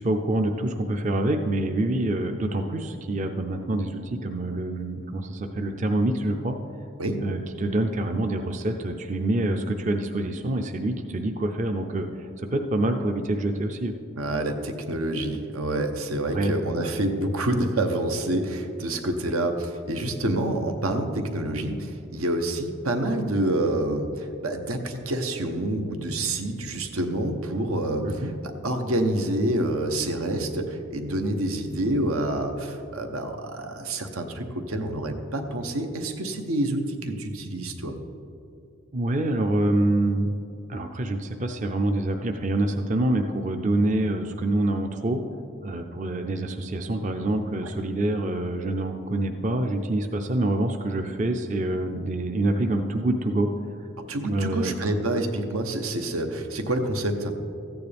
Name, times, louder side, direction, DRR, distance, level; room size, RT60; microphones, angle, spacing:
voice 1, 0.0-6.6 7.2-13.9 16.3-16.9 28.1-28.3 38.9-40.3 40.7-45.2 45.6-53.5 54.2-54.7, right 1 dB, 35° right, 5 dB, 0.5 m, -26 dB
voice 2, 14.2-28.3 28.6-37.9 47.6-47.7 54.1-57.3, right 1 dB, 90° right, 6 dB, 1.0 m, -27 dB
14.0 x 9.3 x 3.4 m, 2.5 s
head